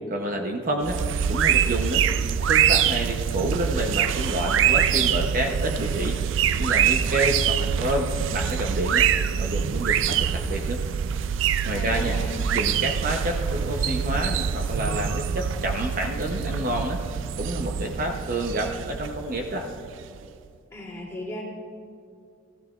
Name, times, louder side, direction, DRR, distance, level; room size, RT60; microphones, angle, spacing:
voice 1, 0.1-1.0 1.3-2.0 2.5-10.8 11.6-12.2 12.5-17.0 17.4-19.7, right 1 dB, 45° right, 2 dB, 0.8 m, -29 dB
sound 1, 0.8-20.3, right 8 dB, 80° right, 0.4 m, -25 dB
voice 2, 11.7-12.4 20.7-21.4, left 1 dB, 15° left, -5 dB, 2.7 m, -35 dB
15.5 x 14.0 x 2.4 m, 2.4 s
head